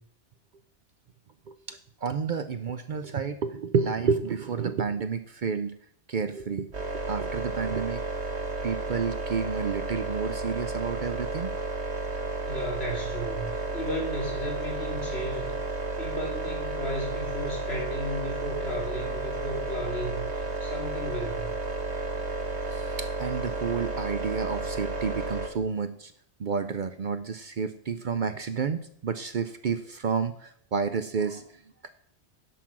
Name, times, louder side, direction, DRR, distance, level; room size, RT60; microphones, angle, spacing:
voice 1, 1.5-5.7 6.1-6.7 7.1-8.0 8.6-11.5 22.7-26.1 26.4-31.4 31.8-31.9, right 5 dB, 55° right, 10 dB, 0.7 m, -30 dB
sound 1, 6.7-25.5, right 2 dB, 75° right, 1.7 m, -32 dB
voice 2, 12.5-15.6 16.0-21.5, equal, 65° left, -1 dB, 2.8 m, -34 dB
11.0 x 5.9 x 6.1 m, 0.64 s
omnidirectional pair, 1.1 m